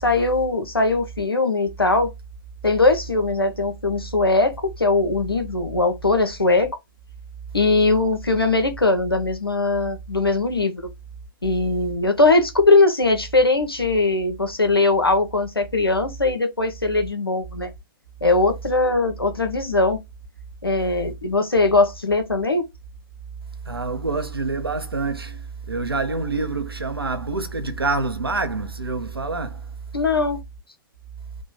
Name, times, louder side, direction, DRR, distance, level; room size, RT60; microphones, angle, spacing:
voice 1, 0.0-2.1 2.6-6.7 7.5-10.9 11.4-17.7 18.2-20.0 20.6-22.7 29.9-30.4, left 3 dB, 90° left, 1.1 m, -20 dB
voice 2, 23.7-29.7, right 3 dB, 85° right, 0.9 m, -26 dB
3.7 x 2.4 x 3.9 m
figure-of-eight pair, 115°, 12 cm